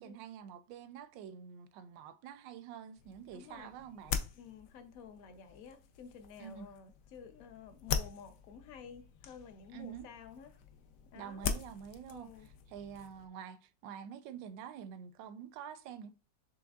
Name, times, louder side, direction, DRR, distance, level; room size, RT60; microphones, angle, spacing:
voice 1, 0.0-4.2 6.4-6.7 9.7-10.1 11.1-12.3 12.7-16.1, right 8 dB, 80° right, 1.2 m, -47 dB
sound 1, 3.0-13.3, left 7 dB, 85° left, 0.7 m, -42 dB
voice 2, 3.3-3.7 4.3-10.5 11.1-11.5 12.1-12.5, left 6 dB, 60° left, 1.0 m, -52 dB
7.0 x 3.2 x 2.3 m
omnidirectional pair, 2.0 m